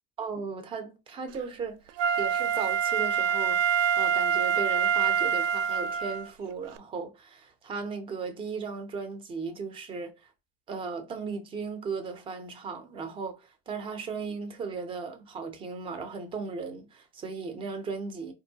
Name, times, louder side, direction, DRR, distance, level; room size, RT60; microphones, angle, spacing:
voice 1, 0.2-10.3 10.7-18.3, right 5 dB, 15° right, 0.4 m, -36 dB
Wind instrument woodwind instrument, 2.0-6.3 6.8-6.9, right 8 dB, 65° right, 0.5 m, -26 dB
4.4 x 2.5 x 2.7 m
supercardioid pair, 150°, 40 cm